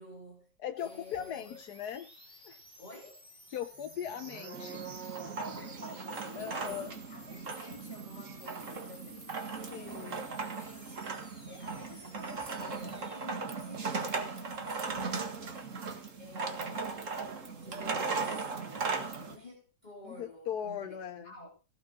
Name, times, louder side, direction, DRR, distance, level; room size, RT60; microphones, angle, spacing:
voice 1, 0.0-0.5 0.8-1.6 2.8-3.3 5.2-17.2 17.6-21.5, left 1 dB, 25° left, 2.8 m, -51 dB
voice 2, 0.6-2.1 2.4-2.6 3.5-4.9 6.3-6.9 9.7-10.2 20.1-21.3, left 9 dB, 65° left, 1.3 m, -39 dB
sound 1, 0.8-13.3, left 1 dB, 5° left, 3.0 m, -55 dB
sound 2, 2.5-9.2 9.5-9.7 10.0-10.3, right 8 dB, 75° right, 2.0 m, -50 dB
sound 3, 4.5-19.4, right 4 dB, 45° right, 2.0 m, -38 dB
16.5 x 7.6 x 6.1 m
omnidirectional pair, 1.9 m